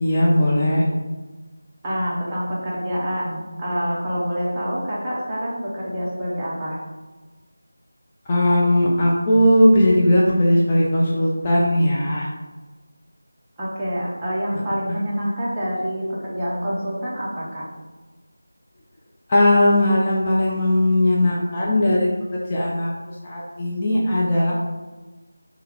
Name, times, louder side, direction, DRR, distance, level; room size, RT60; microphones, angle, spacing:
voice 1, 0.0-0.8 8.3-12.3 19.3-22.9 23.2-24.5, left 1 dB, 20° left, -6 dB, 0.4 m, -18 dB
voice 2, 1.8-6.8 13.6-17.6, equal, 15° right, -7 dB, 0.8 m, -26 dB
3.3 x 2.9 x 3.5 m, 1.2 s
figure-of-eight pair, 165°, 0 cm